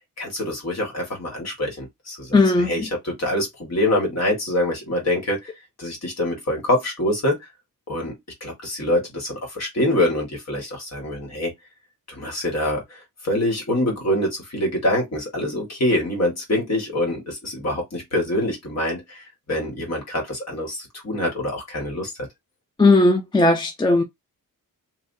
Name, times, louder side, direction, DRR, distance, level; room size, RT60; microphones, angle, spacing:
voice 1, 0.2-2.4 2.6-5.5 5.8-7.4 7.9-8.1 8.4-11.5 12.1-13.0 13.2-22.1, left 1 dB, 45° left, 1.8 m, -25 dB
voice 2, 2.3-2.9 22.8-24.0, left 2 dB, 15° left, 0.4 m, -17 dB
3.4 x 2.7 x 2.7 m
wide cardioid pair, 140°, 35 cm